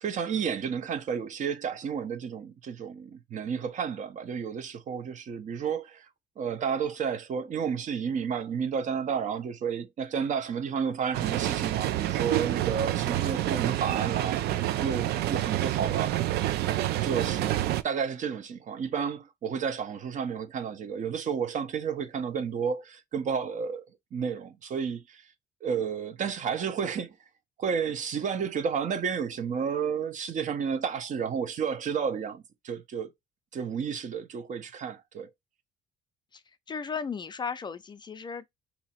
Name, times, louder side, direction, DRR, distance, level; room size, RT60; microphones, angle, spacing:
voice 1, 0.0-6.1 6.4-16.2 17.0-25.3 25.6-27.2 27.6-33.1 33.5-35.3, right 6 dB, 45° right, 0.8 m, -31 dB
sound 1, 11.1-17.8, right 14 dB, 70° right, 0.4 m, -28 dB
voice 2, 36.7-38.5, left 6 dB, 25° left, 0.4 m, -35 dB
2.9 x 2.8 x 4.2 m
cardioid pair, 110°, 17 cm